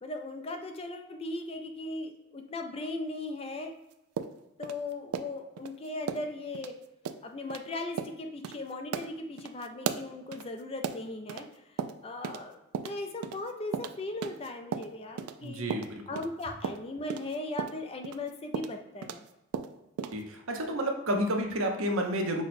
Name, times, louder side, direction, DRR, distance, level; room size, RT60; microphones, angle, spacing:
voice 1, 0.0-3.7 4.6-6.7 7.2-11.5 12.0-15.6 16.1-19.3, left 2 dB, 25° left, 5 dB, 0.4 m, -38 dB
sound 1, 4.2-5.7 6.1-6.3 6.5-6.7 7.0-7.2 7.5-7.6 8.0-8.2 8.4-8.6 8.9-11.5 11.8-12.5 12.7-15.4 15.7-19.3 19.5-20.2, right 7 dB, 90° right, 0.3 m, -36 dB
voice 2, 15.4-16.2 20.1-22.4, right 1 dB, 70° right, 3 dB, 0.7 m, -30 dB
5.8 x 2.1 x 4.1 m, 0.93 s
head